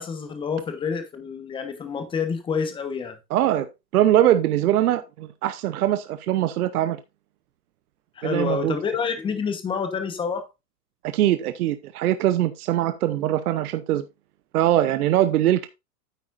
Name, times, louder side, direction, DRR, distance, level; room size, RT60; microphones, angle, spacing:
voice 1, 0.0-3.2 8.2-10.5, left 6 dB, 10° left, 1.0 m, -28 dB
voice 2, 3.3-3.7 3.9-7.0 8.2-8.8 11.1-14.1 14.5-15.7, right 12 dB, 60° right, 0.9 m, -22 dB
9.5 x 8.1 x 2.5 m
hypercardioid pair, 150°, 49 cm